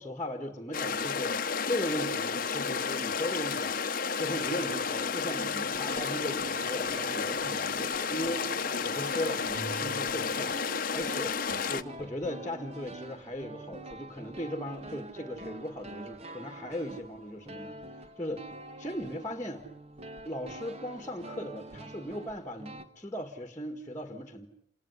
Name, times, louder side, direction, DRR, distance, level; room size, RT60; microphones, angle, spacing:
voice 1, 0.0-3.8 4.1-8.5 8.8-10.6 10.9-11.4 11.7-17.8 18.2-18.4 18.8-19.6 20.3-24.5, equal, 15° left, 6 dB, 1.8 m, -37 dB
sound 1, 0.7-11.8, left 5 dB, 45° left, 1.0 m, -32 dB
sound 2, 4.3-22.8, right 2 dB, 30° right, 1.5 m, -45 dB
28.0 x 20.0 x 9.7 m, 0.72 s
head